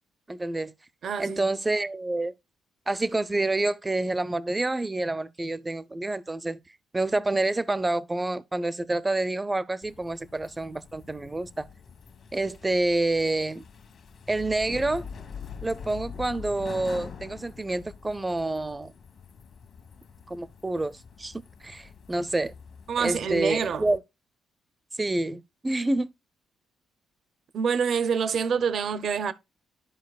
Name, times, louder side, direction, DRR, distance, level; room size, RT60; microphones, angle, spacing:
voice 1, 0.3-0.7 1.2-2.3 2.9-6.6 6.9-11.7 12.3-13.6 14.3-15.1 15.6-18.9 20.3-22.5 23.0-24.0 25.0-26.1, right 2 dB, 15° right, 0.5 m, -28 dB
voice 2, 1.0-1.4 22.9-23.8 27.5-29.3, right 6 dB, 60° right, 0.6 m, -26 dB
sound 1, 9.8-24.0, left 6 dB, 60° left, 1.5 m, -45 dB
12.5 x 5.0 x 2.3 m
cardioid pair, 90°, 0 cm